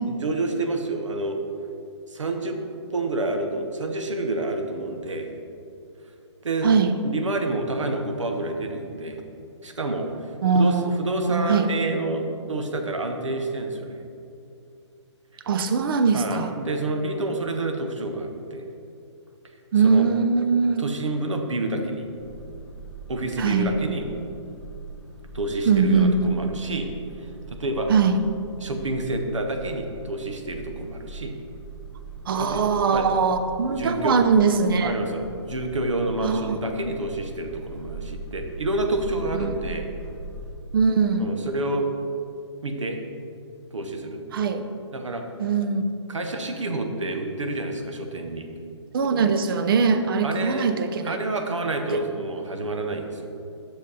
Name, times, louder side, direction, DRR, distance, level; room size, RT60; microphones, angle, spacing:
voice 1, 0.1-1.4 2.1-2.6 2.9-5.3 6.4-6.7 7.0-9.2 9.6-14.0 16.1-18.6 19.8-20.1 20.8-22.1 23.1-24.1 25.3-26.9 27.2-27.9 28.6-31.3 32.4-32.6 32.9-33.1 33.6-34.2 34.8-39.9 41.2-41.9 42.6-43.0 43.7-44.2 44.9-45.3 46.1-48.5 50.2-50.7 51.0-53.3, right 2 dB, 85° right, 4 dB, 0.8 m, -28 dB
voice 2, 6.6-7.0 10.4-11.7 15.5-16.5 19.7-20.9 23.4-23.7 25.7-26.3 27.9-28.2 32.3-34.9 36.2-36.6 39.3-39.5 40.7-41.3 44.3-44.7 45.4-45.9 48.9-51.2, right 5 dB, 50° right, 9 dB, 0.5 m, -21 dB
sound 1, 22.2-40.5, right 2 dB, 10° left, 1.2 m, -40 dB
6.4 x 5.2 x 4.0 m, 2.5 s
hypercardioid pair, 140°, 15 cm